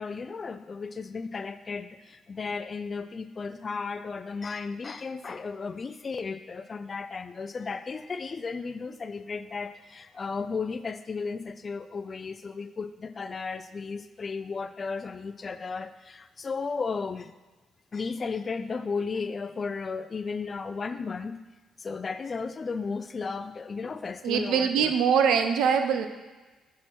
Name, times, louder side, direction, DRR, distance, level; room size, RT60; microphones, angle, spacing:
voice 1, 0.0-17.3 17.9-21.4 21.8-24.9, left 4 dB, 35° left, 11 dB, 0.5 m, -34 dB
voice 2, 24.2-26.1, right 7 dB, 85° right, 7 dB, 0.7 m, -23 dB
6.5 x 5.9 x 6.1 m, 1.3 s
cardioid pair, 90°, 0 cm